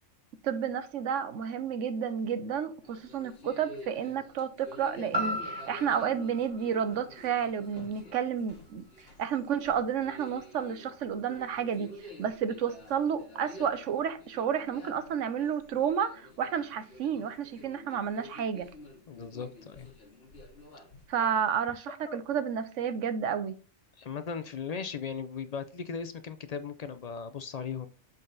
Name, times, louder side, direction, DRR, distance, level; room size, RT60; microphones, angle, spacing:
voice 1, 0.4-18.7 21.1-23.5, right 7 dB, 75° right, 1.1 m, -31 dB
sound 1, 2.8-21.4, left 2 dB, 55° left, 1.8 m, -50 dB
sound 2, 5.1-9.2 9.7-9.8, equal, 25° right, 0.9 m, -38 dB
voice 2, 19.1-19.9 22.0-22.2 24.0-27.9, left 6 dB, 70° left, 0.3 m, -37 dB
7.6 x 4.0 x 3.9 m
omnidirectional pair, 1.3 m